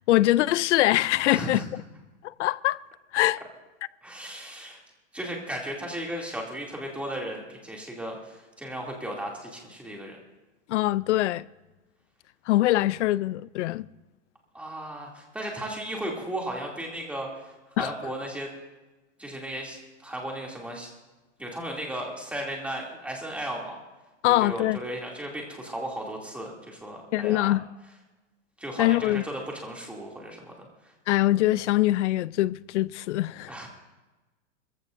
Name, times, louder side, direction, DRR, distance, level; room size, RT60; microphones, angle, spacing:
voice 1, 0.1-1.6 2.2-2.8 3.1-3.4 10.7-11.4 12.5-13.9 17.8-17.9 24.2-24.8 27.1-27.7 28.8-29.2 31.1-33.7, left 16 dB, 70° left, 0.5 m, -23 dB
voice 2, 1.2-1.6 4.0-4.8 5.1-10.2 14.5-18.5 19.2-20.9 21.4-23.8 24.3-27.6 28.6-30.9 33.5-33.7, right 1 dB, 5° right, 2.6 m, -35 dB
23.5 x 15.0 x 2.6 m
supercardioid pair, 145°, 37 cm